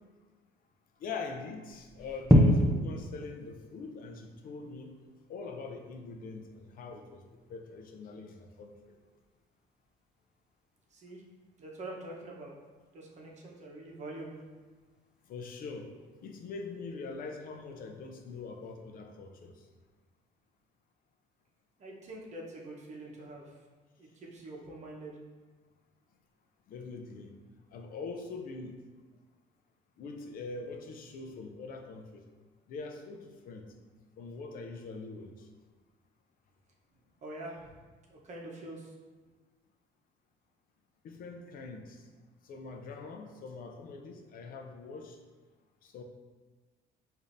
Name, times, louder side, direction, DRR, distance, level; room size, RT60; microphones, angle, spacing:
voice 1, 1.0-4.9 5.3-7.2 7.5-9.0 15.3-15.9 16.2-19.7 26.7-27.3 27.7-28.8 30.0-32.2 32.7-33.7 34.2-35.5 41.0-42.0 42.4-45.2 45.8-46.0, left 4 dB, 55° left, 4 dB, 0.5 m, -43 dB
sound 1, 1.7-18.8, equal, 5° right, 0.5 m, -34 dB
voice 2, 10.9-11.2 11.6-12.5 12.9-14.4 21.8-23.5 24.0-25.1 37.2-37.7 38.1-38.9, right 2 dB, 45° right, -2 dB, 0.9 m, -45 dB
5.0 x 2.6 x 2.6 m, 1.3 s
cardioid pair, 110°, 17 cm